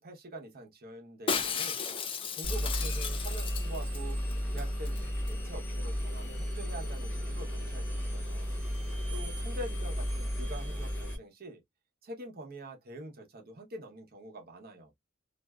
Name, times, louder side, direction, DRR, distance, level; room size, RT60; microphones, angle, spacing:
voice 1, 0.0-1.8 2.3-4.2 4.5-8.6 9.1-11.6 12.0-14.9, right 1 dB, 45° right, 0.8 m, -45 dB
Shatter, 1.3-4.0 4.3-4.4 4.6-5.0 5.3-5.4, left 6 dB, 25° left, 0.3 m, -34 dB
Engine, 2.4-11.2, equal, 10° left, 0.9 m, -34 dB
2.5 x 2.2 x 2.2 m
head